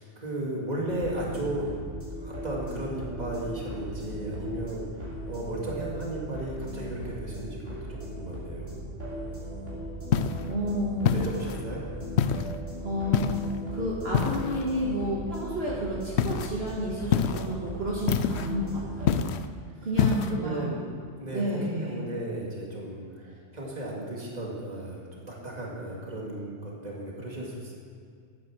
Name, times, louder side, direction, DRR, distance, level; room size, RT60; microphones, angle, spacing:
voice 1, 0.0-1.7 2.2-8.8 11.0-11.8 20.1-20.9 21.2-27.7, right 1 dB, 35° right, -3 dB, 2.4 m, -35 dB
sound 1, 0.9-19.1, equal, 85° right, 3.8 m, -38 dB
sound 2, 10.1-10.5 11.1-11.6 12.2-12.6 13.1-13.6 14.1-14.7 16.2-16.5 17.1-17.5 18.1-18.5 19.1-19.5 20.0-20.3, left 8 dB, 70° left, 0.8 m, -26 dB
voice 2, 10.4-11.3 12.8-19.2 19.8-20.8 21.3-22.0, equal, 60° right, -5 dB, 2.0 m, -31 dB
12.0 x 9.3 x 6.2 m, 2.2 s
omnidirectional pair, 1.2 m